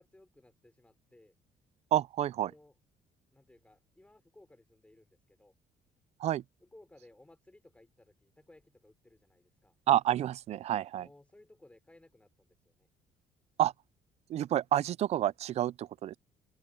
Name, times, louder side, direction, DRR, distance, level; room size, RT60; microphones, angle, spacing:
voice 1, 0.0-1.3 2.4-2.7 3.3-5.5 6.6-9.7 11.0-12.9, left 1 dB, 10° left, 5.6 m, -60 dB
voice 2, 1.9-2.5 6.2-6.4 9.9-11.1 13.6-13.7 14.3-16.2, right 12 dB, 50° right, 0.4 m, -29 dB
cardioid pair, 135°, 14 cm